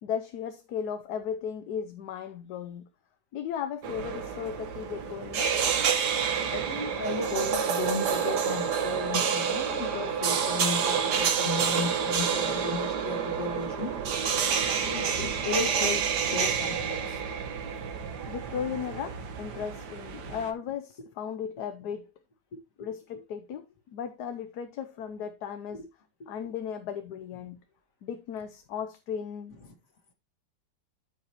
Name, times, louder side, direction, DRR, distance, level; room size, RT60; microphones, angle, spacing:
voice 1, 0.0-2.9 3.3-5.5 18.3-22.1 22.8-23.7 23.9-25.9 26.3-27.6 28.0-29.5, left 8 dB, 70° left, 1.3 m, -36 dB
sound 1, 3.8-20.5, right 7 dB, 75° right, 1.8 m, -29 dB
voice 2, 6.5-13.9 14.8-16.0 16.3-17.2 20.3-20.4 25.7-25.8, left 4 dB, 50° left, 2.2 m, -34 dB
14.0 x 5.1 x 2.9 m
omnidirectional pair, 1.8 m